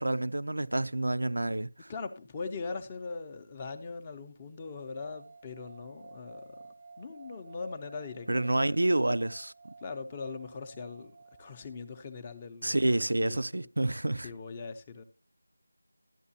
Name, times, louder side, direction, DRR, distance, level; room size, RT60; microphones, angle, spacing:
voice 1, 0.0-1.9 8.3-9.7 12.6-14.3, right 1 dB, 75° right, 0.4 m, -29 dB
voice 2, 1.9-6.6 7.0-8.8 9.8-13.5 14.2-15.0, left 4 dB, 15° left, 0.6 m, -41 dB
sound 1, 4.9-12.1, right 4 dB, 30° right, 0.6 m, -54 dB
12.0 x 9.5 x 2.8 m
figure-of-eight pair, 175°, 0 cm